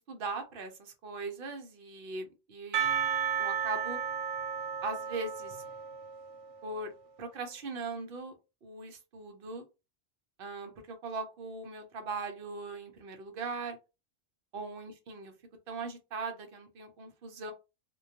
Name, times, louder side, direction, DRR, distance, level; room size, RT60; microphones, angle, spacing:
voice 1, 0.1-2.9 3.4-4.0 4.8-5.6 6.6-6.9 7.2-8.3 8.6-9.6 10.4-13.8 14.5-15.3 15.7-17.5, right 3 dB, 60° right, 0.7 m, -39 dB
Percussion, 2.7-6.6, right 8 dB, 85° right, 0.9 m, -33 dB
2.2 x 2.2 x 2.7 m
omnidirectional pair, 1.2 m